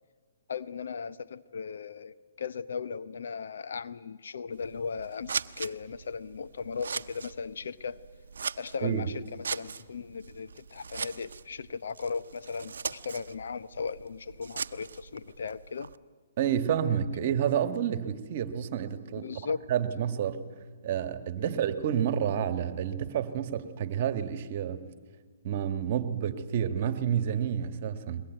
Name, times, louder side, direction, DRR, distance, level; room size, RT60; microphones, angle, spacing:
voice 1, 0.5-8.0 8.6-15.9 19.2-19.6 21.4-21.5, left 5 dB, 70° left, 14 dB, 0.8 m, -37 dB
Scissors, 4.5-16.0, right 5 dB, 75° right, 0.8 m, -40 dB
voice 2, 16.4-19.3 19.7-20.4 20.8-24.8 25.4-28.2, right 9 dB, 45° right, 11 dB, 1.5 m, -29 dB
21.5 x 21.5 x 9.2 m, 1.5 s
hypercardioid pair, 145°, 0 cm